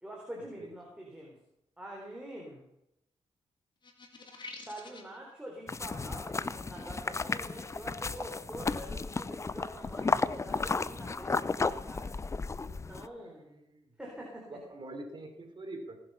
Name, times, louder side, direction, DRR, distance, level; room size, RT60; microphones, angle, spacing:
voice 1, 0.0-1.4 1.8-2.7 4.7-12.1 12.6-13.5 14.0-14.5, right 1 dB, 10° right, -2 dB, 3.9 m, -45 dB
sound 1, 3.8-5.2, left 3 dB, 45° left, 2.9 m, -47 dB
sound 2, 5.7-13.1, left 4 dB, 25° left, 0.6 m, -33 dB
voice 2, 13.2-13.9 14.5-16.0, right 2 dB, 45° right, 4 dB, 3.7 m, -45 dB
19.5 x 7.9 x 5.7 m, 0.83 s
cardioid pair, 75°, 11 cm